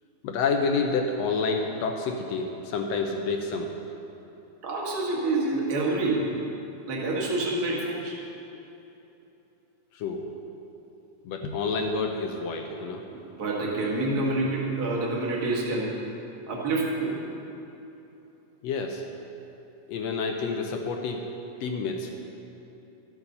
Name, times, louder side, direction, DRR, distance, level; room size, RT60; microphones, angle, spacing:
voice 1, 0.2-3.7 9.9-10.3 11.2-13.0 18.6-19.0 19.9-21.3 21.6-22.1, left 4 dB, 75° left, 3 dB, 1.6 m, -28 dB
voice 2, 4.6-6.3 6.9-8.2 13.1-15.9 16.5-17.2, right 2 dB, 35° right, -4 dB, 1.9 m, -27 dB
13.5 x 8.7 x 5.4 m, 3.0 s
omnidirectional pair, 3.7 m